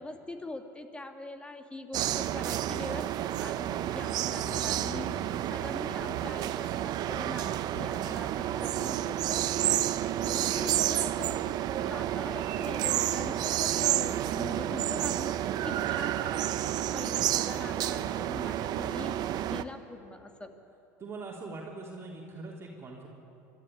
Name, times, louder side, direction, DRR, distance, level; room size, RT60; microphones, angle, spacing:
voice 1, 0.0-3.1 3.4-9.5 10.2-11.6 11.8-20.5, left 2 dB, 10° left, 6 dB, 2.0 m, -43 dB
sound 1, 1.9-19.6, right 12 dB, 50° right, 0.8 m, -30 dB
voice 2, 4.2-5.0 21.0-23.1, right 3 dB, 30° right, -3 dB, 3.5 m, -44 dB
23.5 x 13.5 x 9.7 m, 2.9 s
hypercardioid pair, 90°, 9 cm